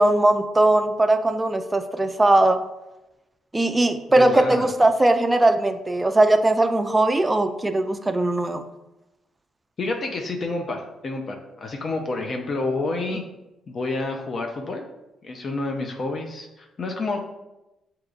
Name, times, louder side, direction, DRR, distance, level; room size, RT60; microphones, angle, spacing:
voice 1, 0.0-2.6 3.5-8.7, right 2 dB, 15° right, 8 dB, 0.4 m, -19 dB
voice 2, 4.2-4.7 9.8-13.2 13.7-14.9 15.2-17.2, left 2 dB, 45° left, 3 dB, 0.5 m, -29 dB
6.3 x 2.9 x 2.5 m, 0.97 s
cardioid pair, 90°, 0 cm